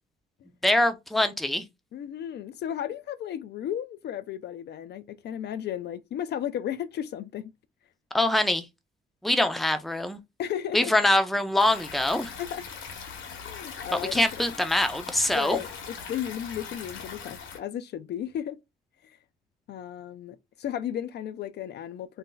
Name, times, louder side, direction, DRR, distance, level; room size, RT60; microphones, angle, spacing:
voice 1, 0.6-1.6 8.1-8.6 9.2-10.2 10.7-12.3 13.9-15.6, left 1 dB, ahead, 0.5 m, -24 dB
voice 2, 1.9-7.5 10.4-10.9 12.4-12.6 13.4-14.2 15.3-18.6 19.0-19.2 19.7-22.2, left 10 dB, 60° left, 0.4 m, -34 dB
Stream, 11.6-17.6, left 6 dB, 85° left, 1.0 m, -41 dB
2.5 x 2.1 x 3.8 m
cardioid pair, 90°, 20 cm